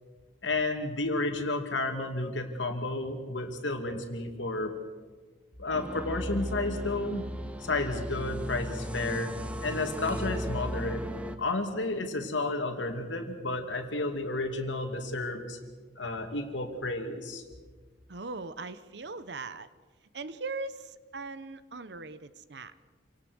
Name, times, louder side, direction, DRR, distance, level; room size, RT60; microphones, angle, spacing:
voice 1, 0.4-4.7 5.6-7.3 7.6-9.4 9.6-11.1 11.4-15.6 16.0-17.4, left 2 dB, 75° left, 5 dB, 2.5 m, -32 dB
sound 1, 5.7-11.4, equal, 5° right, 1.0 m, -36 dB
voice 2, 18.1-19.7 20.1-22.7, right 3 dB, 60° right, 14 dB, 0.9 m, -39 dB
27.0 x 17.5 x 6.4 m, 1.4 s
head